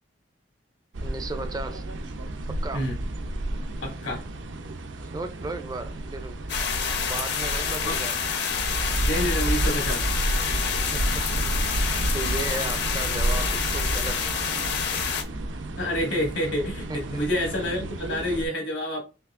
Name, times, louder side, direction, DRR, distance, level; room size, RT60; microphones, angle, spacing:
sound 1, 0.9-18.4, right 1 dB, 75° right, 0.6 m, -31 dB
voice 1, 1.0-1.9 2.5-2.9 5.1-6.4 7.0-8.1 10.7-11.7 12.1-14.2 17.1-17.3, right 2 dB, 20° right, 0.4 m, -35 dB
voice 2, 3.8-4.2 7.8-8.0 9.0-10.1 15.8-19.0, left 1 dB, 80° left, 1.7 m, -28 dB
sound 2, 6.5-15.2, left 7 dB, 60° left, 0.8 m, -28 dB
5.9 x 2.8 x 2.4 m
head